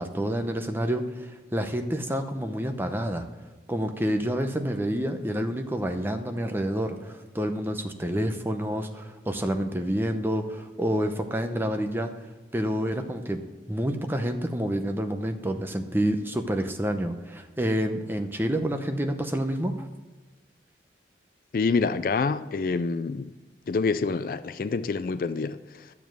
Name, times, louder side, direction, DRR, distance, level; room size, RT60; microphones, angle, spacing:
voice 1, 0.0-3.3 3.7-12.1 12.5-13.4 13.7-19.9, equal, 10° right, 0.7 m, -28 dB
voice 2, 21.5-23.3 23.7-25.9, left 4 dB, 50° left, 0.3 m, -27 dB
11.5 x 7.1 x 6.2 m
head